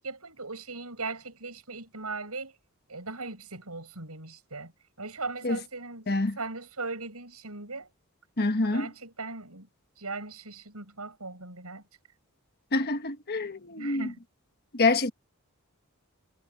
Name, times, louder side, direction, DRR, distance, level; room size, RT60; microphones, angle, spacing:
voice 1, 0.0-2.5 2.9-4.7 5.0-7.9 8.7-9.7 10.0-11.8 13.8-14.2, right 3 dB, 85° right, 7.2 m, -38 dB
voice 2, 6.1-6.4 8.4-8.9 12.7-14.1 14.7-15.1, left 3 dB, 45° left, 1.4 m, -26 dB
head